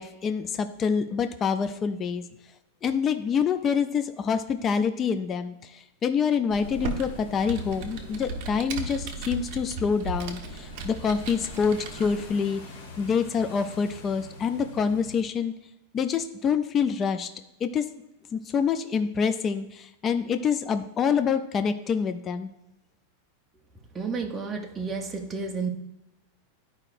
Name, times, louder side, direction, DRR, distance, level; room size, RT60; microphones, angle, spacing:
voice 1, 0.0-2.2 2.8-12.6 13.0-15.5 15.9-17.3 17.6-17.8 18.3-22.5, left 6 dB, 20° left, 9 dB, 0.3 m, -26 dB
sound 1, 6.5-15.2, left 3 dB, 70° left, 2.2 m, -45 dB
Computer keyboard, 6.5-12.3, right 3 dB, 40° right, 0.9 m, -36 dB
voice 2, 23.9-25.7, right 4 dB, 10° right, 2 dB, 0.7 m, -31 dB
11.5 x 4.8 x 2.5 m, 0.94 s
supercardioid pair, 170°, 0 cm